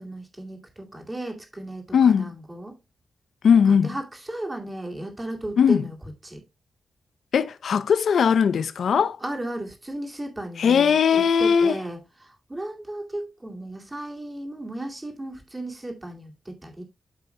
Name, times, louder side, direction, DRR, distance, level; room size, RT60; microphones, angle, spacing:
voice 1, 0.0-2.8 3.6-6.0 6.2-6.4 9.2-16.8, right 1 dB, 15° right, 2.3 m, -35 dB
voice 2, 1.9-2.3 3.4-3.9 5.6-5.8 7.3-9.2 10.6-11.8, left 7 dB, 70° left, 0.5 m, -19 dB
13.0 x 5.4 x 2.2 m
wide cardioid pair, 150°, 0 cm